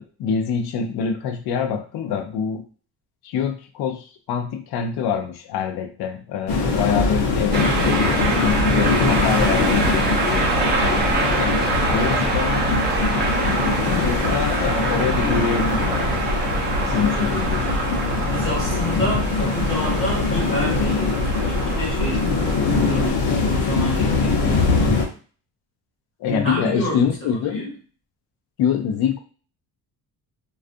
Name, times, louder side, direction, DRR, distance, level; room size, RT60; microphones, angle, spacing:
voice 1, 0.0-2.6 3.2-7.7 8.0-11.6 11.9-13.4 14.1-16.2 16.8-17.7 26.2-27.6 28.6-29.2, left 7 dB, 65° left, 7 dB, 0.5 m, -25 dB
sound 1, 6.5-25.0, left 3 dB, 85° left, 0.9 m, -22 dB
sound 2, 7.5-23.1, right 3 dB, 25° right, 0.4 m, -26 dB
voice 2, 18.3-25.0 26.3-27.7, equal, 30° left, -4 dB, 0.9 m, -29 dB
2.4 x 2.3 x 2.5 m, 0.40 s
cardioid pair, 155°, 41 cm